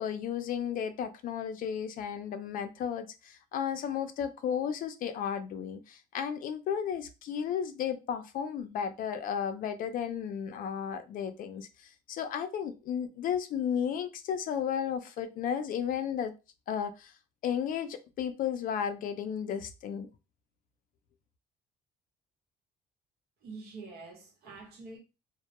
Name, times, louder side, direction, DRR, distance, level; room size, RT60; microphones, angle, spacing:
voice 1, 0.0-16.3 16.7-17.1 17.4-20.1, left 8 dB, 55° left, 0.4 m, -34 dB
voice 2, 23.4-25.0, right 3 dB, 70° right, 0.9 m, -46 dB
2.1 x 2.1 x 2.8 m
cardioid pair, 110°, 17 cm